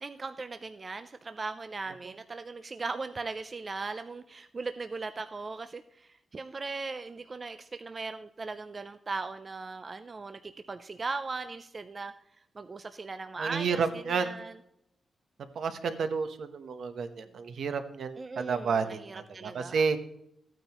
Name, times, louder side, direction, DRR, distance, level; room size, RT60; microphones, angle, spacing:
voice 1, 0.0-12.1 12.6-14.5 18.2-19.8, right 3 dB, 30° right, 10 dB, 0.4 m, -38 dB
voice 2, 13.4-14.4 15.5-20.0, right 5 dB, 65° right, 9 dB, 0.9 m, -31 dB
14.5 x 9.0 x 3.0 m, 0.78 s
wide cardioid pair, 160°, 0 cm